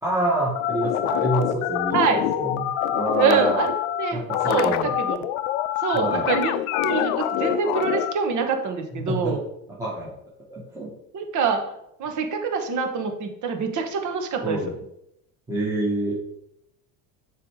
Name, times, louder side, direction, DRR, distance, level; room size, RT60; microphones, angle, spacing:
voice 1, 0.0-3.6 4.1-4.9 5.9-6.3 8.9-9.4 9.8-10.1 10.5-10.9 14.4-14.8 15.5-16.1, right 1 dB, 10° right, -6 dB, 1.7 m, -27 dB
sound 1, 0.6-8.1, left 12 dB, 85° left, 0.6 m, -25 dB
voice 2, 3.2-3.7 4.0-4.7 5.0-5.3 5.8-6.5 6.8-9.4 11.1-11.7 12.0-14.6, right 5 dB, 45° right, 4 dB, 1.3 m, -25 dB
6.8 x 3.4 x 4.8 m, 0.79 s
supercardioid pair, 95°, 40 cm